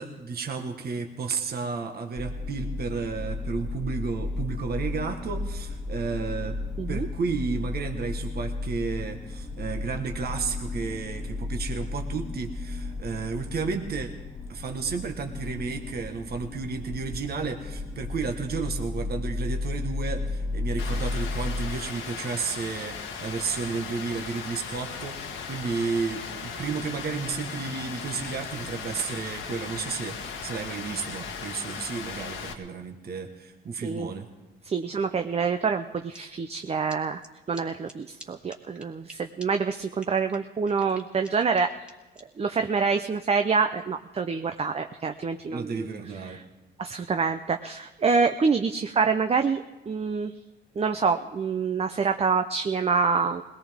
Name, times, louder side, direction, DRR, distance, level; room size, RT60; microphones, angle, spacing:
voice 1, 0.0-6.6 6.9-14.1 14.5-34.3 45.5-46.4, right 5 dB, 50° right, 4 dB, 1.5 m, -32 dB
sound 1, 2.2-21.7, left 2 dB, 15° left, 0.9 m, -33 dB
Rain, 20.8-32.5, left 6 dB, 75° left, 1.6 m, -37 dB
voice 2, 33.8-34.1 34.6-37.2 37.5-41.7 42.4-45.9 46.2-46.4 46.8-50.3 50.8-53.4, right 5 dB, 30° right, 7 dB, 0.6 m, -26 dB
sound 2, 36.1-36.2 36.5-36.6 36.9-37.0 37.2-37.3 37.5-37.6 37.9-38.0 38.2-38.3 38.5-39.1 39.4-39.5 39.7-39.8 40.0-42.2, right 1 dB, 5° right, 1.9 m, -46 dB
21.5 x 18.0 x 3.6 m, 1.1 s
cardioid pair, 90°, 20 cm